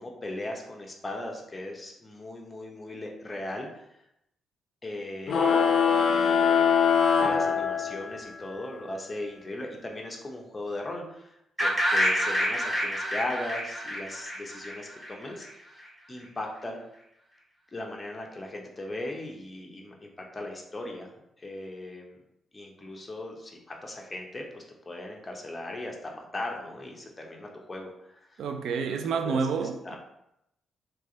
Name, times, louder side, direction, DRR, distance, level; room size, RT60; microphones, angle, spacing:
voice 1, 0.0-3.9 4.8-6.7 7.1-15.8 16.1-16.8 17.7-22.2 22.5-28.4 29.2-29.5 29.8-30.0, left 1 dB, 20° left, 0.8 m, -38 dB
sound 1, 5.3-8.2, left 6 dB, 55° left, 0.5 m, -22 dB
sound 2, 11.6-15.5, equal, 15° right, 1.0 m, -28 dB
voice 2, 28.4-30.0, right 5 dB, 80° right, 0.4 m, -29 dB
3.4 x 3.2 x 3.9 m
cardioid pair, 110°, 0 cm